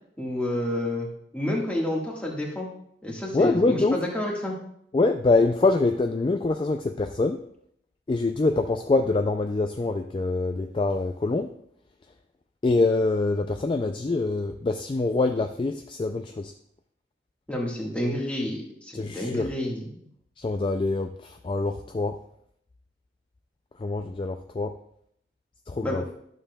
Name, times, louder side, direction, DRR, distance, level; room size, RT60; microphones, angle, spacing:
voice 1, 0.2-1.1 1.3-2.7 3.0-4.5 17.5-19.8 25.8-26.0, left 1 dB, 5° left, -3 dB, 1.6 m, -29 dB
voice 2, 3.3-4.0 4.9-7.4 8.1-11.5 12.6-16.5 18.9-19.5 20.4-22.2 23.8-24.8 25.7-26.0, left 3 dB, 30° left, 6 dB, 0.3 m, -25 dB
11.5 x 6.8 x 2.3 m, 0.70 s
head